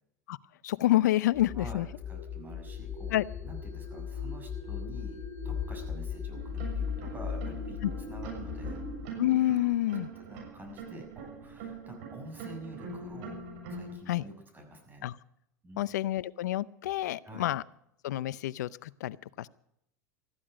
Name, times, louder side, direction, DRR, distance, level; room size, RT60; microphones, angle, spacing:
voice 1, 0.6-1.9 3.1-3.2 7.8-7.9 9.2-10.1 14.1-14.2 15.0-15.1 15.8-17.6 18.0-19.5, left 14 dB, 75° left, 20 dB, 0.6 m, -28 dB
sound 1, 1.3-9.0, left 6 dB, 30° left, 6.2 m, -37 dB
voice 2, 1.5-3.1 3.4-5.2 5.4-8.8 10.0-13.4 13.7-15.1 15.6-15.8 17.2-17.5, right 1 dB, 20° right, 3 dB, 6.7 m, -47 dB
sound 2, 6.3-14.0, right 5 dB, 65° right, 6.8 m, -43 dB
20.0 x 14.5 x 5.1 m, 0.77 s
hypercardioid pair, 95°, 9 cm